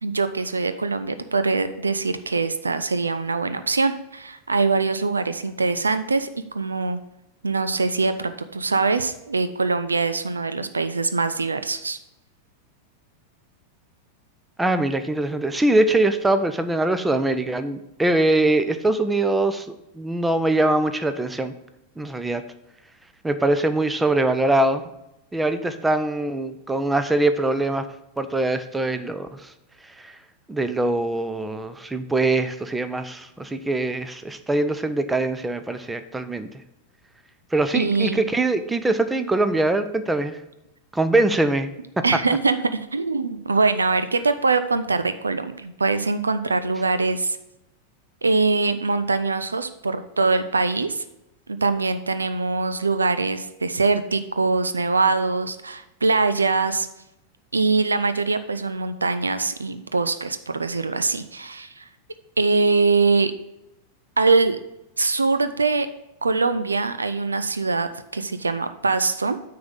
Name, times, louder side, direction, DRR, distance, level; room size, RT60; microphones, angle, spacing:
voice 1, 0.0-6.3 6.5-7.0 7.4-12.0 37.7-38.3 42.0-47.4 48.2-51.0 51.5-56.9 57.5-61.8 62.4-63.3 64.2-64.6 65.0-65.9 66.2-69.4, right 3 dB, 75° right, 11 dB, 0.5 m, -23 dB
voice 2, 14.6-19.7 19.9-21.5 22.0-22.4 23.2-24.8 25.3-27.9 28.2-29.4 30.0-30.1 30.5-36.5 37.5-40.4 40.9-41.7 42.0-42.1, right 2 dB, 10° right, 10 dB, 0.7 m, -22 dB
9.4 x 3.8 x 6.3 m, 0.89 s
figure-of-eight pair, 90°, 0 cm